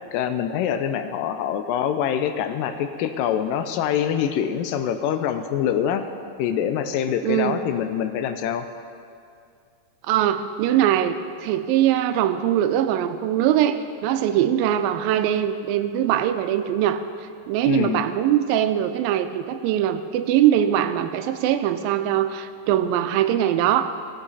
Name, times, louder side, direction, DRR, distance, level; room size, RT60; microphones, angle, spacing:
voice 1, 0.1-6.1 6.4-8.7 17.7-18.0, left 9 dB, 80° left, 9 dB, 2.1 m, -25 dB
voice 2, 7.2-7.5 10.1-11.2 11.4-17.0 17.5-23.9, right 11 dB, 85° right, 10 dB, 2.3 m, -22 dB
16.0 x 8.0 x 4.1 m, 2.3 s
omnidirectional pair, 4.0 m